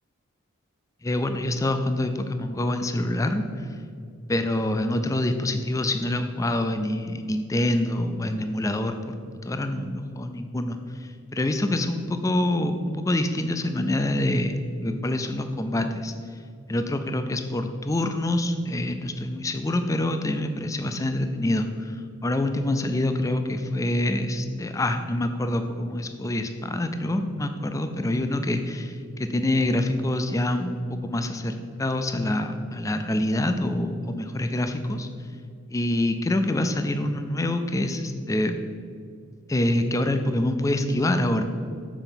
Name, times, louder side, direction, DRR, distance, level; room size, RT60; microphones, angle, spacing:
voice 1, 1.0-3.8 4.3-9.1 9.4-14.5 14.8-16.1 16.7-28.9 29.2-35.1 35.7-38.6 39.5-41.4, left 1 dB, 15° left, 8 dB, 0.3 m, -26 dB
7.1 x 4.4 x 5.8 m, 2.4 s
head